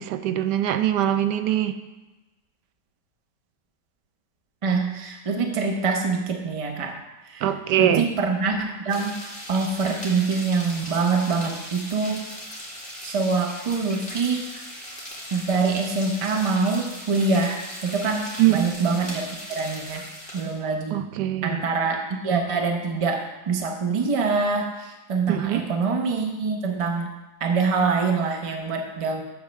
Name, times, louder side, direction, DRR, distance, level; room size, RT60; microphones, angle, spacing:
voice 1, 0.0-1.8 7.4-8.1 18.4-18.6 20.9-21.6 25.3-25.7, right 12 dB, 80° right, 10 dB, 1.2 m, -22 dB
voice 2, 4.6-7.0 7.3-7.4 7.8-9.1 9.5-12.2 13.0-14.5 15.3-21.0 21.4-27.1 27.4-29.2, right 4 dB, 30° right, 3 dB, 0.6 m, -25 dB
sound 1, 8.9-20.6, equal, 5° left, 1.9 m, -38 dB
8.2 x 4.4 x 6.3 m, 1.1 s
omnidirectional pair, 1.8 m